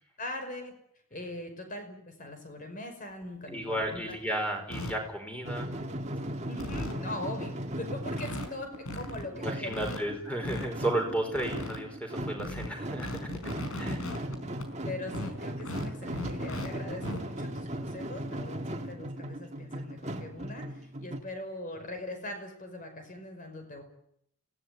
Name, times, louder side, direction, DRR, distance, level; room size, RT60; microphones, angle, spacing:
voice 1, 0.2-0.7 1.1-4.0 6.5-10.0 14.2-14.4 14.8-23.8, left 1 dB, 40° left, 6 dB, 5.5 m, -41 dB
sound 1, 3.3-3.4 3.8-4.1 4.7-4.9 5.6-5.9 6.2-6.3 6.5-7.0 7.6-7.7 7.8-7.9 8.1-8.5 8.7-9.2 9.7-10.7 11.1-11.8 12.2-14.7 15.1-16.7 16.9-17.2 18.6-18.7 19.1-19.2 20.4-20.6, left 1 dB, 85° left, 4.8 m, -38 dB
voice 2, 3.5-5.7 9.3-13.3 13.8-14.1, right 1 dB, 5° left, 3 dB, 5.1 m, -33 dB
sound 2, 5.4-21.2, right 1 dB, 30° right, 2.0 m, -38 dB
26.0 x 17.5 x 9.5 m, 0.72 s
head